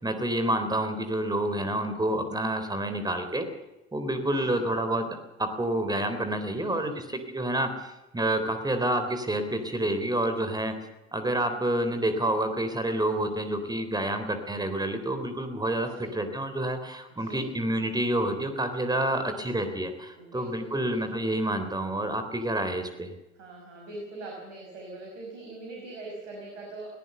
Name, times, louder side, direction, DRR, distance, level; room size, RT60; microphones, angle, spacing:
voice 1, 0.0-3.5 3.9-10.7 11.1-23.1, right 1 dB, 10° right, 8 dB, 3.7 m, -28 dB
voice 2, 4.2-4.6 6.3-7.0 14.0-14.4 15.9-16.2 17.2-17.5 19.2-19.7 20.2-21.3 23.3-26.9, right 2 dB, 70° right, 0 dB, 5.6 m, -43 dB
22.0 x 17.5 x 6.8 m, 1.0 s
figure-of-eight pair, 70°, 38 cm